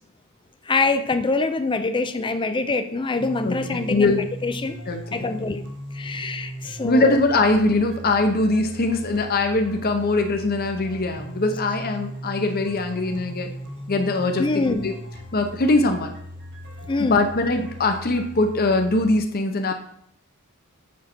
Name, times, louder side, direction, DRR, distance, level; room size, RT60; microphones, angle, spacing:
voice 1, 0.7-4.8 5.1-5.6 5.9-7.2 14.4-14.9 16.8-17.2, left 3 dB, 20° left, 10 dB, 0.5 m, -25 dB
sound 1, 3.1-19.2, equal, 55° right, 1.3 m, -38 dB
voice 2, 3.4-4.3 4.9-5.3 6.8-13.5 13.9-14.9 15.3-16.1 17.0-19.7, left 2 dB, 45° left, 5 dB, 0.8 m, -22 dB
7.3 x 6.1 x 4.5 m, 0.68 s
head